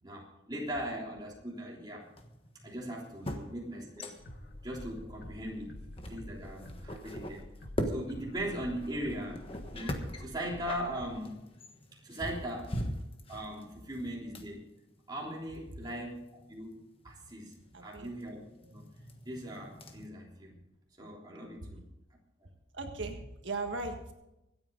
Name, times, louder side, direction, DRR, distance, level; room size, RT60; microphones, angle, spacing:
voice 1, 0.0-2.1 2.6-4.2 4.6-5.7 6.1-7.4 7.9-9.4 9.7-11.4 12.0-12.8 13.3-14.6 15.1-17.5 17.8-18.4 18.7-18.9 19.3-20.6 21.0-21.9, right 1 dB, 20° right, -3 dB, 3.4 m, -39 dB
sound 1, 2.0-4.5 4.8-5.0 5.6-20.1, equal, 30° left, 1.4 m, -42 dB
sound 2, 4.2-11.2, left 1 dB, 55° left, 1.5 m, -48 dB
voice 2, 15.7-16.1 17.7-18.1 18.6-18.7 21.7-21.8 22.7-24.1, right 3 dB, 80° right, 3 dB, 1.6 m, -39 dB
25.5 x 8.7 x 3.9 m, 0.90 s
head